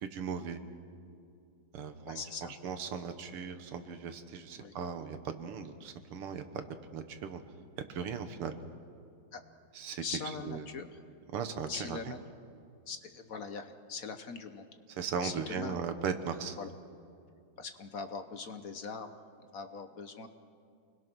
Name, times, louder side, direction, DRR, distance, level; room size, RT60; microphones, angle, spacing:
voice 1, 0.0-0.6 1.7-2.2 2.6-6.7 6.9-7.4 7.9-8.6 9.7-10.0 10.4-10.7 11.3-12.1 14.9-16.6, right 6 dB, 90° right, 8 dB, 2.2 m, -38 dB
voice 2, 2.1-2.5 4.5-4.7 9.3-9.4 10.0-10.9 11.7-12.2 12.9-14.7 15.2-15.8 16.6-16.7 17.6-19.1 19.5-20.3, left 5 dB, 50° left, 8 dB, 1.1 m, -41 dB
28.5 x 21.0 x 6.2 m, 2.5 s
omnidirectional pair, 2.4 m